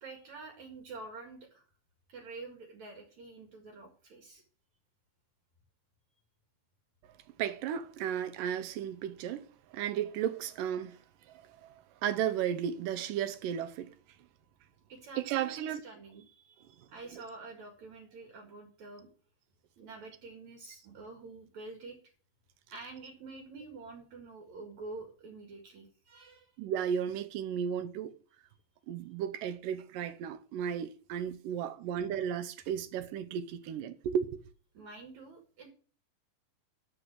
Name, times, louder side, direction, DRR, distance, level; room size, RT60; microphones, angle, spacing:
voice 1, 0.0-1.6 2.1-4.4 14.9-19.1 19.8-22.1 22.7-26.5 34.7-35.7, right 3 dB, 55° right, 3.1 m, -48 dB
voice 2, 7.4-11.0 11.3-14.0 15.2-15.8 17.1-17.2 26.6-28.1 28.9-34.4, right 9 dB, 75° right, 2.5 m, -34 dB
13.0 x 4.9 x 8.1 m
omnidirectional pair, 4.1 m